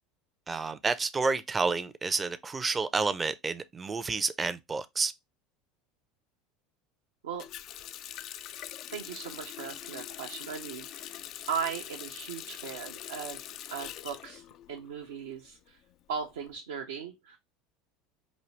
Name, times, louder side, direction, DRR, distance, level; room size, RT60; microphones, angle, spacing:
voice 1, 0.5-5.1, right 4 dB, 20° right, 0.5 m, -30 dB
Water tap faucet, 7.4-15.1 15.4-16.5, left 11 dB, 50° left, 0.3 m, -43 dB
voice 2, 8.9-11.2 11.5-15.8 16.1-17.4, right 6 dB, 70° right, 0.6 m, -38 dB
5.2 x 2.6 x 3.1 m
figure-of-eight pair, 70°, 0 cm